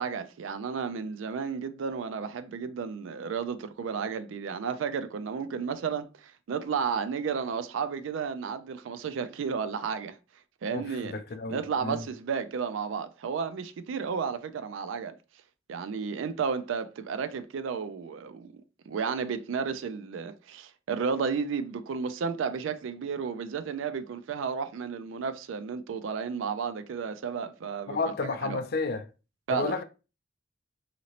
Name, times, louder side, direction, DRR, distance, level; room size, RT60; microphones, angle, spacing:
voice 1, 0.0-10.2 10.6-11.2 11.5-15.1 15.7-28.0 28.2-28.6 29.5-29.7, right 6 dB, 80° right, 0.4 m, -32 dB
voice 2, 10.7-12.1 27.9-29.0 29.5-29.8, left 3 dB, 50° left, 0.4 m, -32 dB
2.9 x 2.8 x 2.8 m
head